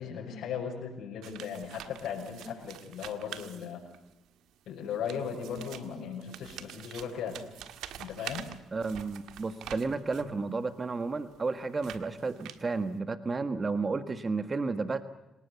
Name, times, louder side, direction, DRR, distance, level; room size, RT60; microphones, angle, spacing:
voice 1, 0.0-3.8 4.7-7.4 8.0-8.5 10.2-10.3, left 7 dB, 75° left, -7 dB, 7.0 m, -37 dB
sound 1, 1.2-4.1 4.8-10.4 11.0-12.9, right 11 dB, 85° right, 1.6 m, -46 dB
voice 2, 8.7-15.1, right 4 dB, 30° right, 12 dB, 1.6 m, -32 dB
26.0 x 19.0 x 8.3 m, 0.97 s
cardioid pair, 90°, 0 cm